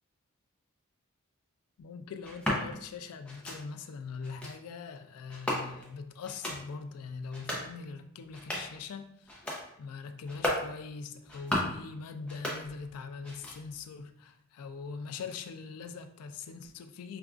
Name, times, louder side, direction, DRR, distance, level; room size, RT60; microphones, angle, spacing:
voice 1, 1.8-9.5 9.8-17.2, left 5 dB, 80° left, 0.3 m, -42 dB
sound 1, 2.2-2.6 3.2-3.6 4.2-4.5 5.3-5.9 6.2-6.6 7.2-7.7 8.2-8.8 9.2-9.6 10.2-10.7 11.2-11.8 12.2-13.0 13.2-13.8, left 1 dB, 5° left, 0.5 m, -35 dB
4.8 x 2.3 x 2.4 m
head